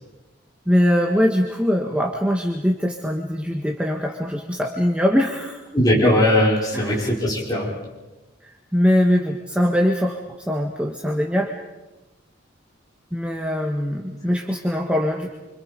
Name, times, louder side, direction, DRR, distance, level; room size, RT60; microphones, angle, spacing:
voice 1, 0.7-5.6 6.7-7.0 8.4-11.6 13.1-15.3, equal, 5° right, 1 dB, 1.6 m, -22 dB
voice 2, 5.7-7.8, left 1 dB, 20° left, -4 dB, 5.2 m, -19 dB
28.0 x 26.0 x 5.2 m, 1.1 s
head